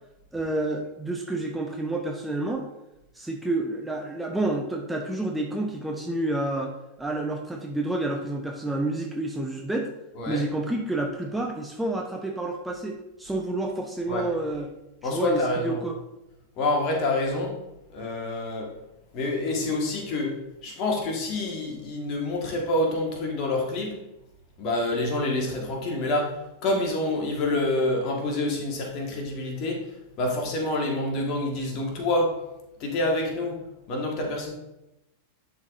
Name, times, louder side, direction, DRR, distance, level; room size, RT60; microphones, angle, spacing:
voice 1, 0.3-2.6 3.1-6.7 7.0-9.9 10.3-14.7 15.0-16.0, right 2 dB, 5° right, 1 dB, 0.6 m, -29 dB
voice 2, 15.0-15.8 16.6-17.6 17.9-18.7 19.1-24.0 24.6-29.9 30.2-32.4 32.8-33.6 33.9-34.5, left 2 dB, 40° left, 0 dB, 1.5 m, -27 dB
10.5 x 4.0 x 2.6 m, 0.94 s
figure-of-eight pair, 90°, 0 cm